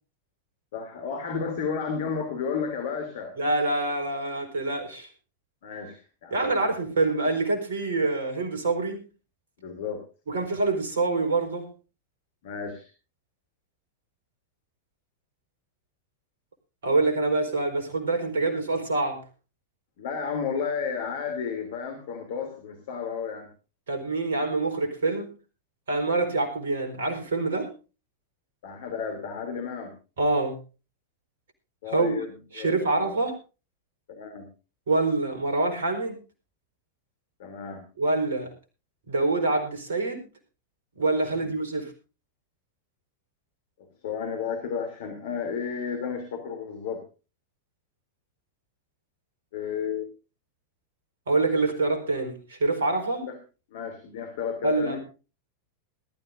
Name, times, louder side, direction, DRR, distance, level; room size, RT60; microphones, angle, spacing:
voice 1, 0.7-3.4 5.6-6.7 9.6-10.0 12.4-12.9 20.0-23.5 28.6-29.9 31.8-33.2 34.1-34.5 37.4-37.8 41.3-41.5 44.0-47.0 49.5-50.1 53.2-53.4 53.7-55.0, left 6 dB, 55° left, 5 dB, 3.1 m, -32 dB
voice 2, 3.4-5.1 6.3-9.0 10.3-11.7 16.8-19.2 23.9-25.3 25.9-27.7 30.2-30.6 31.9-32.2 32.5-33.3 34.9-36.2 38.0-38.5 39.1-40.2 41.0-41.9 51.3-53.2 54.6-55.0, right 3 dB, 65° right, 6 dB, 4.6 m, -26 dB
21.0 x 13.0 x 2.6 m, 0.33 s
figure-of-eight pair, 90°, 0 cm